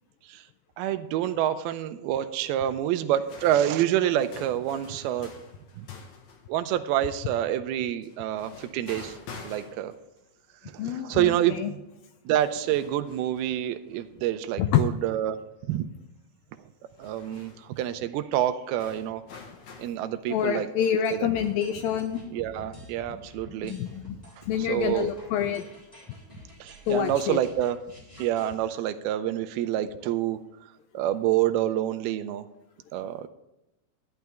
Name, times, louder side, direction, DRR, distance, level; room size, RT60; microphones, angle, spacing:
voice 1, 0.8-5.3 5.8-5.9 6.5-9.1 9.4-9.9 10.7-11.8 12.3-15.4 15.7-15.9 17.0-19.2 19.8-20.7 21.1-21.3 22.3-23.7 24.6-25.1 26.6-27.8 28.2-30.4 30.9-32.4 32.9-33.3, right 12 dB, 85° right, 10 dB, 2.5 m, -27 dB
sound 1, 3.2-6.5 8.0-10.2 10.8-10.9 11.9-12.0 12.3-14.6 14.9-15.0 16.9-18.0 18.8-19.9, left 4 dB, 60° left, 2.5 m, -47 dB
voice 2, 10.8-11.7 14.6-14.8 20.3-22.2 23.6-24.2 24.5-25.6 26.9-27.4, left 9 dB, 80° left, 8 dB, 2.2 m, -27 dB
sound 2, 21.0-28.5, left 1 dB, 10° left, 3.7 m, -47 dB
12.0 x 11.0 x 3.4 m, 0.94 s
omnidirectional pair, 4.5 m